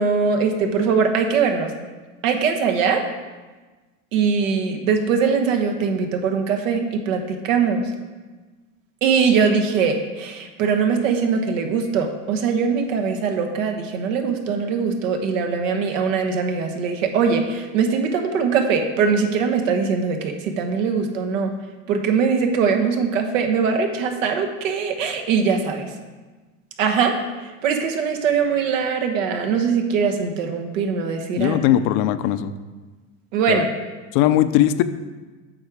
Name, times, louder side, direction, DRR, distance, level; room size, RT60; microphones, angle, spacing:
voice 1, 0.0-1.7 2.2-3.0 4.1-7.8 9.0-21.5 21.9-25.9 26.8-31.6 33.3-33.7, right 5 dB, 80° right, 4 dB, 1.3 m, -21 dB
voice 2, 31.4-32.5 33.5-33.6 34.1-34.8, left 12 dB, 50° left, 12 dB, 0.5 m, -19 dB
8.6 x 6.1 x 4.9 m, 1.3 s
supercardioid pair, 130°, 38 cm